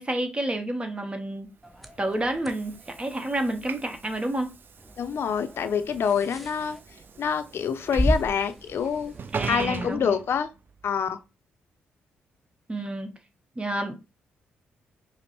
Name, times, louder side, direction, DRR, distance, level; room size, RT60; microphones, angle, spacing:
voice 1, 0.0-1.5 2.0-4.5 9.3-10.2 12.7-13.1 13.6-13.9, right 1 dB, 25° right, 1.0 m, -29 dB
sound 1, 1.6-9.9, equal, ahead, 0.7 m, -35 dB
Train / Sliding door, 1.6-10.9, right 5 dB, 50° right, 0.4 m, -41 dB
voice 2, 5.0-6.8 7.2-9.1 9.5-10.5 10.8-11.2, left 7 dB, 60° left, 0.5 m, -26 dB
5.0 x 2.1 x 3.0 m
hypercardioid pair, 50°, 5 cm